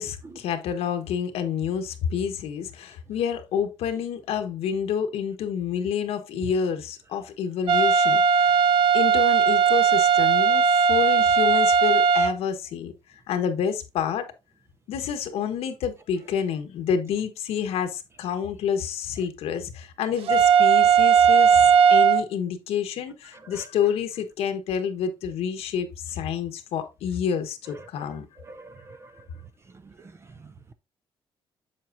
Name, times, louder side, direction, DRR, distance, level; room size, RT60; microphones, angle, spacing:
voice 1, 0.0-8.6 8.9-14.3 14.9-28.3, left 8 dB, 85° left, 1.3 m, -28 dB
sound 1, 7.7-12.3 20.3-22.2, right 6 dB, 75° right, 0.8 m, -18 dB
voice 2, 28.5-29.1, right 2 dB, 25° right, 0.5 m, -45 dB
7.5 x 7.2 x 2.6 m
cardioid pair, 135°, 10 cm